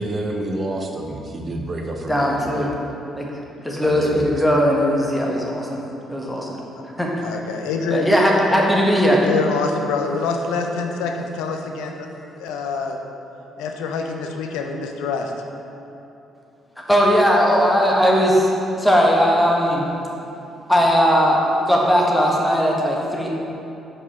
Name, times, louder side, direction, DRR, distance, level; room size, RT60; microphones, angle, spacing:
voice 1, 0.0-2.7 3.8-4.4, right 1 dB, 40° right, 2 dB, 0.8 m, -28 dB
voice 2, 2.1-2.7 3.1-3.2 3.6-5.8 6.1-6.6 7.0-7.3 7.9-9.2 16.9-18.5 18.8-19.9 20.7-21.4 21.7-23.3, equal, 10° left, -2 dB, 1.3 m, -18 dB
voice 3, 7.2-8.1 9.2-12.1 12.4-13.0 13.6-15.3, left 4 dB, 75° left, 3 dB, 0.5 m, -25 dB
5.4 x 5.0 x 4.2 m, 2.8 s
hypercardioid pair, 45°, 0 cm